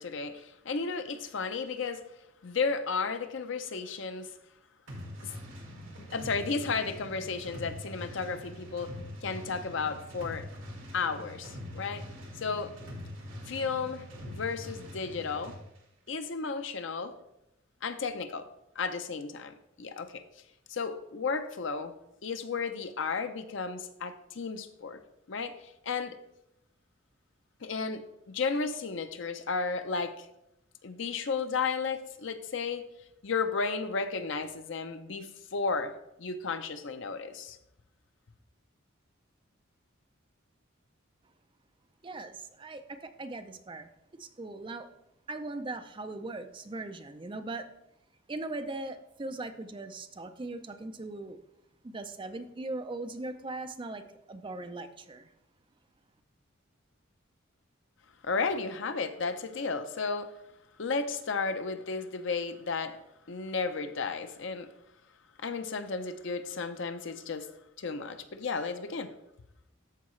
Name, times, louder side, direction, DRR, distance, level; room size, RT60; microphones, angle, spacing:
voice 1, 0.0-2.0 2.4-4.3 5.2-5.3 6.1-8.9 9.2-10.5 10.9-12.0 12.4-12.7 13.5-15.6 16.1-17.1 17.8-18.5 18.8-20.2 20.7-21.9 22.2-25.0 25.3-25.5 25.9-26.1 27.6-30.3 30.8-32.9 33.2-37.6 58.2-60.3 60.8-63.0 63.3-64.7 65.4-67.5 67.8-69.1, left 4 dB, 65° left, 9 dB, 0.6 m, -33 dB
sound 1, 4.9-15.6, left 1 dB, 70° right, 1.8 m, -43 dB
voice 2, 42.0-44.9 45.3-47.7 48.3-51.4 51.8-55.3, right 2 dB, 25° right, 8 dB, 0.4 m, -39 dB
13.0 x 4.6 x 3.2 m, 0.84 s
head